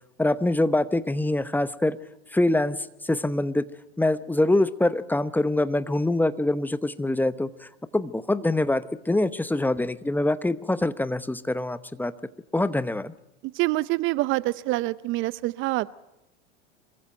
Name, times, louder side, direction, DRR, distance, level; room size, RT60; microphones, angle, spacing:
voice 1, 0.2-2.0 2.3-3.6 4.0-12.1 12.5-13.1, left 2 dB, 5° left, 14 dB, 0.9 m, -24 dB
voice 2, 13.5-15.9, right 19 dB, 35° right, 18 dB, 0.6 m, -26 dB
26.5 x 23.0 x 4.5 m, 0.88 s
hypercardioid pair, 95°, 34 cm